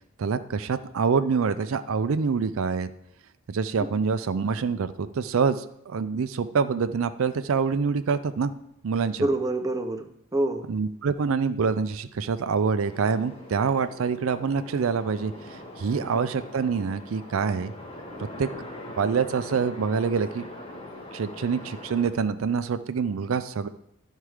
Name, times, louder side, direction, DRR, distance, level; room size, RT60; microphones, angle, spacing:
voice 1, 0.2-2.9 3.5-8.5 8.8-9.3 10.7-17.7 18.4-18.5 19.0-20.4 21.1-23.7, right 5 dB, 75° right, 12 dB, 0.4 m, -26 dB
voice 2, 9.2-10.6 16.0-16.2, right 2 dB, 15° right, 6 dB, 0.5 m, -27 dB
sound 1, 12.8-22.1, left 1 dB, 30° left, 1.3 m, -42 dB
11.5 x 4.5 x 4.8 m, 0.75 s
head